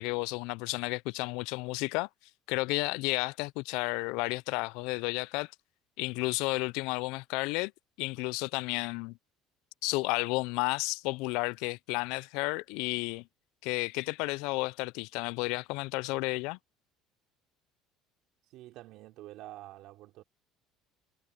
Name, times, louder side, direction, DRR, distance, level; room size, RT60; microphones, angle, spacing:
voice 1, 0.0-2.1 2.5-5.5 6.0-7.7 8.0-9.2 9.8-13.2 13.6-16.6, left 25 dB, 80° left, 0.3 m, -32 dB
voice 2, 18.5-20.2, right 16 dB, 65° right, 3.7 m, -48 dB
cardioid pair, 120°, 0 cm